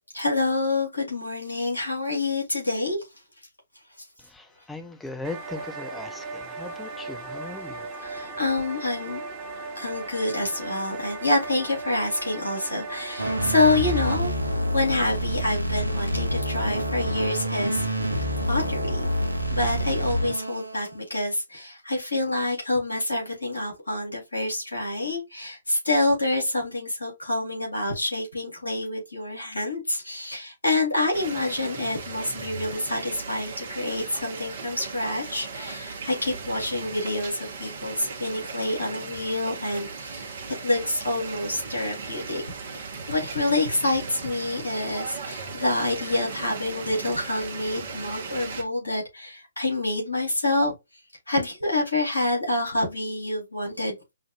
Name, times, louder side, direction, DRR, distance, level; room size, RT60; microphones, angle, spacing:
voice 1, 0.1-3.0 8.0-9.2 9.8-17.9 18.5-19.1 19.5-40.3 40.6-42.4 42.7-50.7 51.3-53.9, left 2 dB, 80° left, 2.7 m, -27 dB
voice 2, 4.3-7.9, left 3 dB, 5° left, 0.5 m, -38 dB
sound 1, 5.2-14.2, right 3 dB, 25° right, 1.3 m, -37 dB
sound 2, 13.2-20.9, equal, 85° right, 0.8 m, -27 dB
sound 3, 31.1-48.6, right 4 dB, 50° right, 1.0 m, -37 dB
5.5 x 2.5 x 2.4 m
figure-of-eight pair, 125°, 0 cm